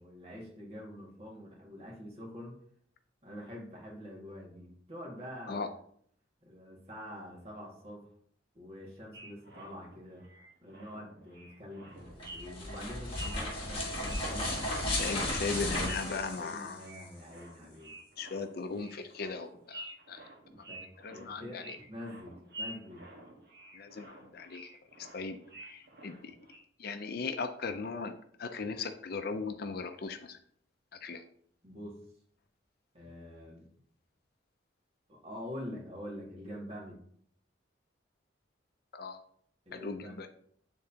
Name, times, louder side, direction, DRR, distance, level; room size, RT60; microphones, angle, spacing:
voice 1, 0.0-2.6 3.2-5.7 6.4-8.1 8.5-10.3 10.6-14.6 16.3-17.9 20.5-20.9 21.1-23.1 31.6-32.0 32.9-33.7 35.1-37.0 39.7-40.2, equal, 30° right, -2 dB, 1.9 m, -46 dB
sound 1, 9.1-26.6, right 1 dB, 60° right, 1.4 m, -50 dB
sound 2, 12.1-17.0, left 1 dB, 30° left, 1.4 m, -35 dB
voice 2, 15.0-16.8 18.2-20.2 20.6-20.7 21.0-21.8 23.8-24.7 25.0-26.3 26.8-28.1 28.4-30.4 31.0-31.2 38.9-39.2 39.8-40.3, left 4 dB, 50° left, 8 dB, 0.5 m, -38 dB
9.2 x 3.8 x 2.8 m, 0.63 s
head